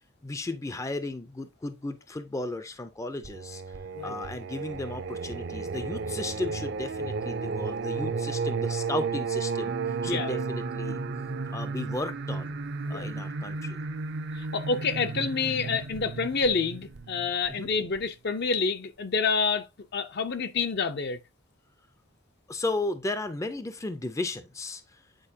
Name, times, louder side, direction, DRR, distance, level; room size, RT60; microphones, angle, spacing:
voice 1, 0.2-3.6 4.0-11.0 11.5-12.5 12.9-13.8 17.5-17.7 22.5-25.0, left 2 dB, 15° left, 0.4 m, -35 dB
Singing, 3.2-18.0, right 4 dB, 55° right, 0.5 m, -33 dB
voice 2, 10.0-10.5 12.9-13.1 14.3-21.2, left 4 dB, 55° left, 0.6 m, -28 dB
8.9 x 4.5 x 2.7 m
head